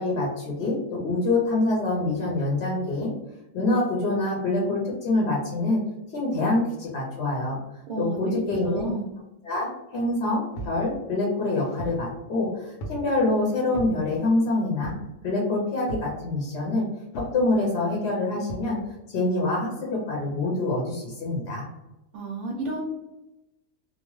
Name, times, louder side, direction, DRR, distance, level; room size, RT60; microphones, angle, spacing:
voice 1, 0.0-3.1 3.5-5.8 6.1-7.6 8.0-8.9 9.4-14.9 15.2-16.8 17.2-18.8 19.1-21.6, left 2 dB, 60° left, -3 dB, 0.8 m, -25 dB
voice 2, 7.9-8.2 8.6-9.1 22.1-22.8, right 3 dB, 65° right, -1 dB, 0.7 m, -32 dB
sound 1, 10.5-10.8 11.4-12.1 12.8-13.1 13.7-14.0 14.8-15.1 15.9-16.2 17.1-17.4 18.5-18.7, right 1 dB, 90° left, 1.2 m, -36 dB
2.8 x 2.1 x 3.0 m, 0.96 s
omnidirectional pair, 1.6 m